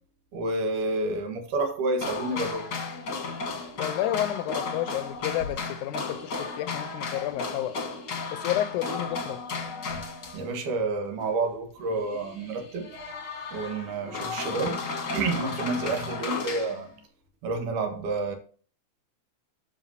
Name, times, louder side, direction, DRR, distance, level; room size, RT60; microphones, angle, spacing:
voice 1, 0.3-2.7 10.3-12.9 13.5-14.9 15.1-16.9 17.4-18.4, right 3 dB, 75° right, 3.1 m, -29 dB
sound 1, 2.0-10.6 11.2-11.3 11.8-16.8, left 4 dB, 40° left, 1.5 m, -34 dB
voice 2, 3.8-7.8 8.3-9.4, left 13 dB, 80° left, 2.1 m, -31 dB
12.5 x 6.3 x 2.8 m
omnidirectional pair, 3.6 m